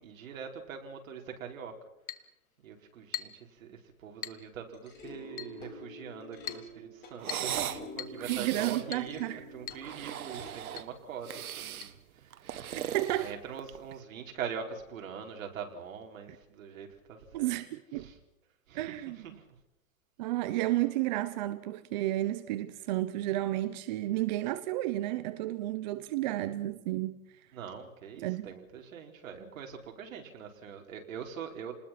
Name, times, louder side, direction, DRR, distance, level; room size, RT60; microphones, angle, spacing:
voice 1, 0.0-1.7 2.6-12.6 13.2-17.5 18.0-18.1 18.7-19.6 27.5-31.7, right 7 dB, 65° right, 4.5 m, -43 dB
Chink clink, 2.1-2.3 3.1-3.5 4.2-4.5 5.4-5.6 6.5-6.7 7.3-7.6 8.0-8.2 8.9-9.1 9.7-9.9 10.1-10.2 10.8-10.9 11.8-11.9, left 11 dB, 75° left, 1.6 m, -40 dB
sound 1, 4.6-10.5, left 2 dB, 25° left, 4.0 m, -48 dB
sound 2, 7.2-7.8 8.2-8.9 9.7-10.9 11.2-11.9 12.3-13.9, right 10 dB, 85° right, 1.7 m, -38 dB
voice 2, 8.3-9.4 12.9-13.3 17.3-18.1 18.7-19.4 20.2-27.2 28.2-28.5, right 16 dB, 30° right, 0.8 m, -32 dB
29.5 x 20.0 x 5.9 m
supercardioid pair, 165°, 42 cm